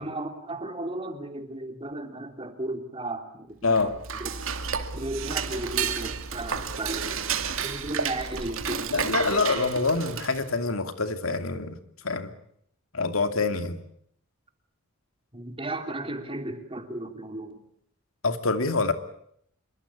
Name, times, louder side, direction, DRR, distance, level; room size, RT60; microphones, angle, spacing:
voice 1, 0.0-4.4 4.9-9.0 15.3-17.6, right 1 dB, 25° right, 6 dB, 3.3 m, -35 dB
voice 2, 3.6-3.9 8.9-11.8 12.0-12.3 12.9-13.8 18.2-18.9, left 3 dB, 75° left, 8 dB, 2.7 m, -26 dB
Dishes pots and pans / Cutlery silverware, 3.7-10.6, right 6 dB, 65° right, 2.6 m, -31 dB
27.0 x 23.5 x 8.7 m, 0.69 s
head